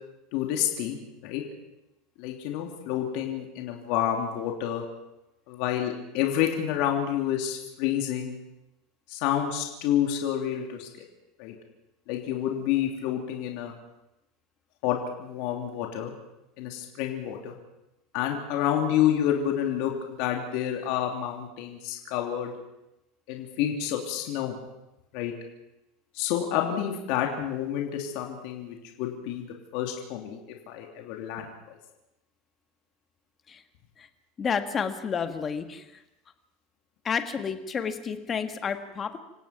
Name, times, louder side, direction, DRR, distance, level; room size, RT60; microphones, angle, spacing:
voice 1, 0.3-1.4 2.2-4.9 5.5-8.4 9.1-10.9 11.4-11.5 12.1-13.7 14.8-16.1 16.6-17.5 18.1-22.5 23.3-24.6 25.1-25.3 26.1-29.4 29.7-30.4 30.7-31.8, left 10 dB, 55° left, 1 dB, 3.2 m, -29 dB
voice 2, 34.4-35.8 37.0-39.2, left 6 dB, 20° left, 7 dB, 1.6 m, -30 dB
27.0 x 17.0 x 6.0 m, 0.91 s
supercardioid pair, 160°, 0 cm